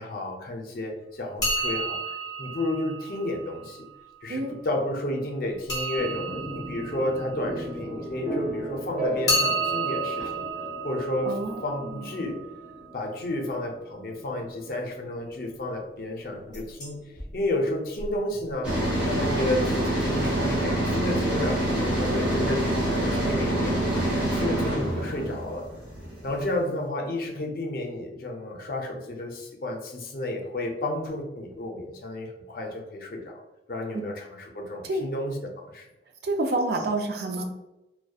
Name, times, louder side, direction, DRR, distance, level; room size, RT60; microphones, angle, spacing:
voice 1, 0.0-2.0 2.4-3.9 4.2-10.5 10.8-11.3 11.6-12.4 12.9-17.0 17.3-18.8 19.0-23.8 24.3-25.7 26.2-33.4 33.7-35.9, left 1 dB, 55° left, 1 dB, 0.4 m, -31 dB
sound 1, 1.4-4.1 5.7-8.4 9.3-13.1 16.5-16.9 17.2-17.3 18.0-18.1 18.3-18.4, right 1 dB, 25° left, 0.7 m, -32 dB
voice 2, 4.3-4.6 11.2-12.1 33.9-34.0 34.8-35.1 36.2-37.4, right 2 dB, 65° right, 4 dB, 0.4 m, -29 dB
sound 2, 6.0-19.7, equal, 40° right, 0.8 m, -37 dB
sound 3, 18.6-26.6, right 1 dB, 10° right, 0.9 m, -26 dB
2.6 x 2.1 x 2.3 m, 0.94 s
head